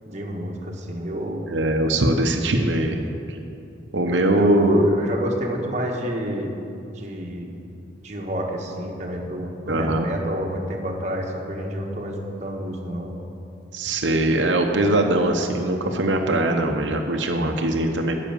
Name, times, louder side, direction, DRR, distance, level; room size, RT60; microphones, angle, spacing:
voice 1, 0.0-1.4 4.0-6.5 6.9-7.5 8.0-13.1, right 1 dB, 40° right, 0 dB, 1.3 m, -28 dB
voice 2, 1.5-3.0 3.3-3.4 3.9-4.9 9.7-10.1 13.7-18.1, right 1 dB, 85° right, 3 dB, 0.8 m, -21 dB
10.0 x 6.3 x 8.9 m, 2.7 s
head